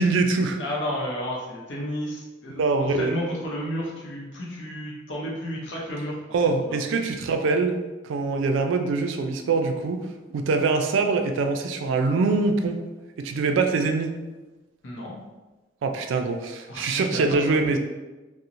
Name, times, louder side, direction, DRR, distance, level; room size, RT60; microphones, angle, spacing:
voice 1, 0.0-0.6 2.6-3.2 6.3-10.0 10.3-12.8 13.2-14.2 15.8-17.8, right 3 dB, 80° right, 5 dB, 0.3 m, -24 dB
voice 2, 0.6-6.2 6.7-6.8 14.8-15.2 16.7-17.4, equal, 70° left, -3 dB, 0.7 m, -32 dB
2.9 x 2.0 x 2.5 m, 1.2 s
head